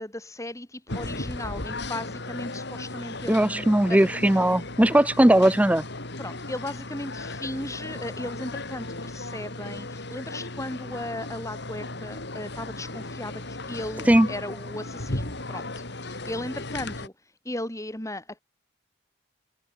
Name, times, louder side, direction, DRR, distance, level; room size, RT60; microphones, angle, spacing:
voice 1, 0.0-4.5 6.2-18.4, left 1 dB, 15° left, 4.5 m, -36 dB
sound 1, 0.9-17.1, left 2 dB, 60° left, 4.1 m, -36 dB
voice 2, 3.3-5.8 14.1-14.3, right 1 dB, 5° right, 0.5 m, -19 dB
head